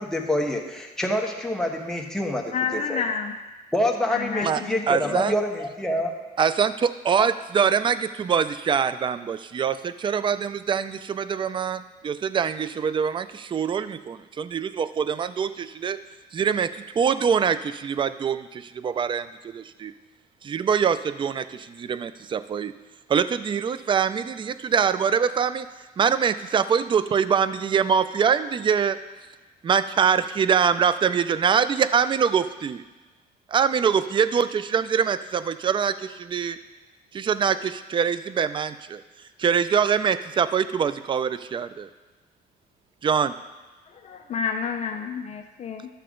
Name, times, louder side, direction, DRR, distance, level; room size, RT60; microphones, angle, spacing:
voice 1, 0.0-3.0 3.7-6.1, left 1 dB, 5° left, 0 dB, 1.3 m, -26 dB
voice 2, 2.5-3.4 4.1-5.2 43.9-45.9, left 6 dB, 40° left, 4 dB, 0.6 m, -30 dB
voice 3, 4.9-5.3 6.4-16.0 16.3-19.9 20.4-22.7 23.1-25.7 26.0-29.0 29.6-32.8 33.5-36.6 37.1-39.0 39.4-41.9 43.0-43.3, right 7 dB, 30° right, 13 dB, 0.4 m, -24 dB
12.0 x 6.7 x 3.8 m, 1.2 s
cardioid pair, 110°, 17 cm